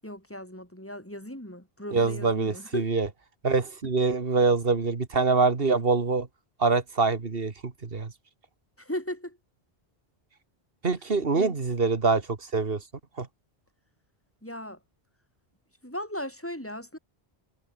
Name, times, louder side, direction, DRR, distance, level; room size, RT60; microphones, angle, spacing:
voice 1, 0.0-2.9 8.8-9.4 11.4-11.6 14.4-14.8 15.8-17.0, left 1 dB, 10° left, 7.7 m, -37 dB
voice 2, 1.9-3.1 3.4-6.3 6.6-8.1 10.8-12.2 12.5-12.8 13.2-13.3, right 4 dB, 60° right, 2.1 m, -24 dB
omnidirectional pair, 1.1 m